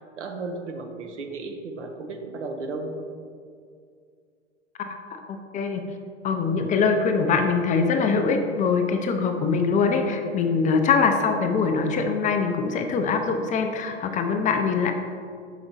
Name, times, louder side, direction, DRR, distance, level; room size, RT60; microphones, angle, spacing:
voice 1, 0.2-3.1 10.4-10.5, right 3 dB, 80° right, 4 dB, 0.9 m, -34 dB
voice 2, 4.8-5.8 6.2-14.9, left 5 dB, 20° left, 5 dB, 0.4 m, -23 dB
5.8 x 5.0 x 4.0 m, 2.2 s
hypercardioid pair, 95°, 35 cm